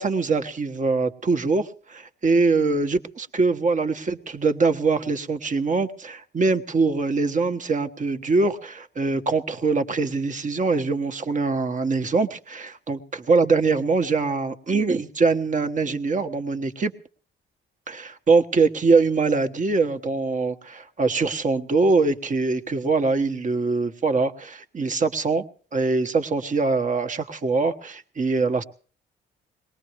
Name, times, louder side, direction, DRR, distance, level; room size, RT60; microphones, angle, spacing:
voice 1, 0.0-13.0 13.3-16.9 17.9-25.4 25.7-28.6, right 4 dB, 40° right, 8 dB, 1.4 m, -23 dB
22.0 x 19.5 x 3.2 m, 0.42 s
cardioid pair, 90°, 20 cm